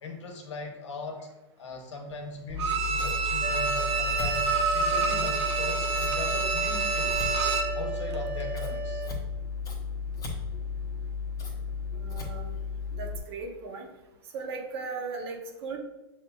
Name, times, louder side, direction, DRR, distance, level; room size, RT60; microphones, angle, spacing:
voice 1, 0.0-1.3 1.6-7.3 7.7-9.1, left 3 dB, 85° left, 3 dB, 1.0 m, -40 dB
Scissors, 2.5-13.2, left 5 dB, 25° left, 1.0 m, -34 dB
Bowed string instrument, 2.6-7.8 8.1-8.2, right 5 dB, 80° right, 0.6 m, -28 dB
sound 1, 3.4-9.1, right 4 dB, 5° right, 0.3 m, -35 dB
voice 2, 11.9-12.5 12.9-13.9 14.3-15.8, right 4 dB, 65° right, 2 dB, 0.9 m, -37 dB
7.2 x 2.8 x 2.3 m, 0.99 s
hypercardioid pair, 120°, 15 cm